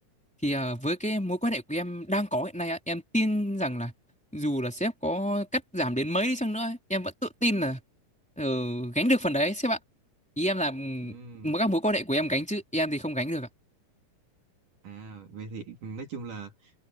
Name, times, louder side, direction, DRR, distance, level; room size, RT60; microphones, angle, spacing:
voice 1, 0.4-3.9 4.3-7.8 8.4-9.8 10.4-11.1 11.4-13.5, equal, ahead, 3.4 m, -28 dB
voice 2, 11.0-11.5 14.8-16.7, right 4 dB, 65° right, 4.3 m, -41 dB
open air
omnidirectional pair, 4.0 m